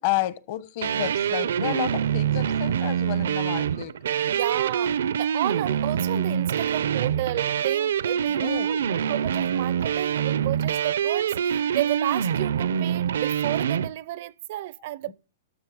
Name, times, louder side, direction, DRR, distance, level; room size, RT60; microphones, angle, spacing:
voice 1, 0.0-3.9 8.3-9.5 15.1-15.2, left 15 dB, 45° left, 0.9 m, -31 dB
sound 1, 0.8-13.9, right 8 dB, 85° right, 0.7 m, -25 dB
voice 2, 4.3-15.1, right 16 dB, 45° right, 0.5 m, -32 dB
13.0 x 6.3 x 4.9 m
hypercardioid pair, 160°, 0 cm